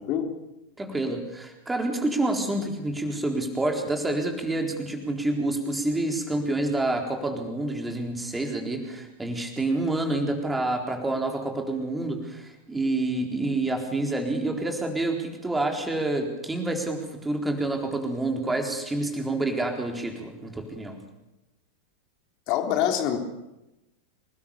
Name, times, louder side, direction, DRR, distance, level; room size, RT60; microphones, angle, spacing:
voice 1, 0.8-21.0, right 2 dB, 10° right, 3 dB, 4.0 m, -28 dB
voice 2, 22.5-23.2, left 10 dB, 40° left, 4 dB, 3.4 m, -24 dB
27.0 x 19.5 x 7.2 m, 0.97 s
figure-of-eight pair, 90°, 0 cm